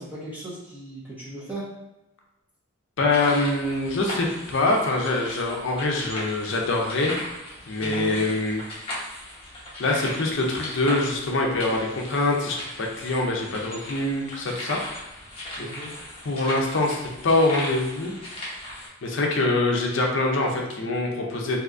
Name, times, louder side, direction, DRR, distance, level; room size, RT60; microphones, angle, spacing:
voice 1, 0.0-1.7 7.8-8.2 15.6-15.9, right 1 dB, 10° right, -7 dB, 0.6 m, -37 dB
voice 2, 3.0-7.2 7.7-8.6 9.8-14.8 16.2-18.1 19.0-21.6, left 2 dB, 60° left, 0 dB, 0.5 m, -24 dB
sound 1, 3.1-18.9, left 1 dB, 25° left, 0.8 m, -37 dB
3.5 x 2.7 x 2.5 m, 0.98 s
head